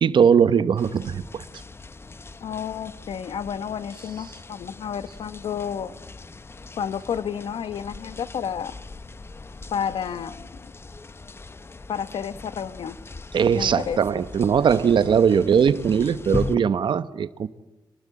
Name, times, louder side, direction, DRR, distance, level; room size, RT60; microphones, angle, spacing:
voice 1, 0.0-1.4 13.3-17.5, right 7 dB, 70° right, 1.0 m, -20 dB
sound 1, 0.8-16.6, left 3 dB, 30° left, 0.8 m, -39 dB
voice 2, 2.4-5.9 6.8-8.7 9.7-10.5 11.9-13.0 13.5-14.0, left 8 dB, 85° left, 1.1 m, -31 dB
27.0 x 20.0 x 8.6 m
cardioid pair, 95°, 9 cm